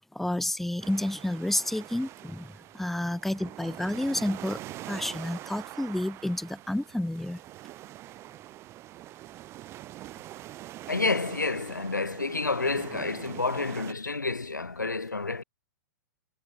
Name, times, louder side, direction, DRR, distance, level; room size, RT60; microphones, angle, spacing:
voice 1, 0.1-4.6 4.9-7.4, left 1 dB, ahead, 1.9 m, -30 dB
sound 1, 0.8-13.9, right 15 dB, 25° right, 1.4 m, -44 dB
voice 2, 10.9-15.4, left 3 dB, 80° left, 3.0 m, -29 dB
figure-of-eight pair, 110°, 10 cm